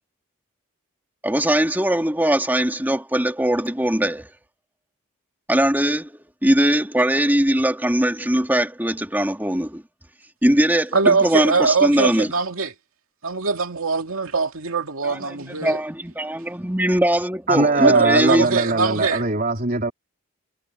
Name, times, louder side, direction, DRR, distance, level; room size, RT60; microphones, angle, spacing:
voice 1, 1.2-4.3 5.5-9.8 10.4-12.3 15.0-18.6, right 1 dB, 10° right, 2.4 m, -21 dB
voice 2, 10.9-12.7 13.2-15.8 17.8-19.2, right 4 dB, 70° right, 2.4 m, -21 dB
voice 3, 17.5-19.9, right 3 dB, 40° right, 3.6 m, -21 dB
head